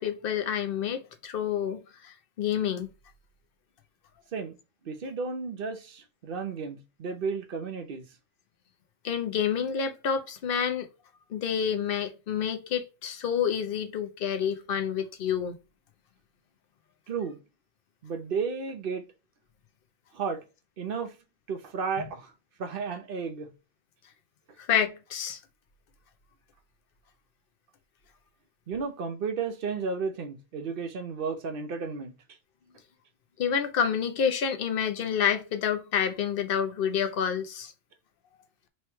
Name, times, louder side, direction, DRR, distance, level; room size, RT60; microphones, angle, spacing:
voice 1, 0.0-2.9 9.0-10.9 11.3-15.6 22.0-22.1 24.7-25.4 33.4-37.7, left 8 dB, 50° left, 0.8 m, -28 dB
voice 2, 4.8-8.0 17.1-17.4 18.0-19.0 20.1-20.4 20.8-21.1 21.5-22.3 22.6-23.5 28.7-32.1, right 5 dB, 50° right, 0.7 m, -33 dB
3.1 x 3.1 x 4.3 m
omnidirectional pair, 1.4 m